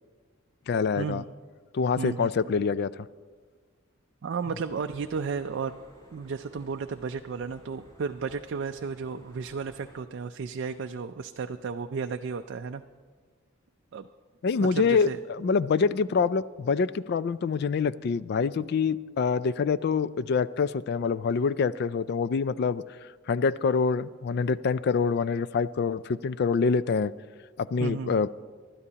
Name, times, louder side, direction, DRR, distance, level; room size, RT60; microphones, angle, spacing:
voice 1, 0.7-1.2 1.7-2.9 14.4-22.8 23.3-27.1 27.6-28.3, left 5 dB, 50° left, 17 dB, 0.3 m, -26 dB
voice 2, 2.0-2.3 4.2-5.8 6.1-12.8 13.9-14.1 14.6-15.2 27.8-28.2, right 5 dB, 55° right, 7 dB, 0.4 m, -33 dB
sound 1, 4.7-10.0, equal, 20° left, 3.5 m, -55 dB
25.0 x 12.0 x 2.8 m, 1.5 s
head